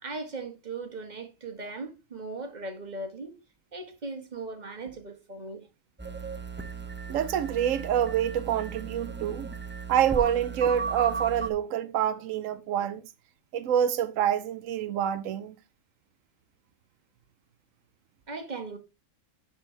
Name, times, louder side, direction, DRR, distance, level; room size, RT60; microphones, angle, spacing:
voice 1, 0.0-3.4 3.7-5.7 18.3-18.8, right 3 dB, 35° right, 1.4 m, -38 dB
sound 1, 6.0-11.5, right 5 dB, 15° right, 0.4 m, -36 dB
voice 2, 7.1-9.5 9.9-13.0 13.5-15.5, right 9 dB, 80° right, 1.0 m, -27 dB
10.5 x 4.5 x 3.1 m
omnidirectional pair, 1.4 m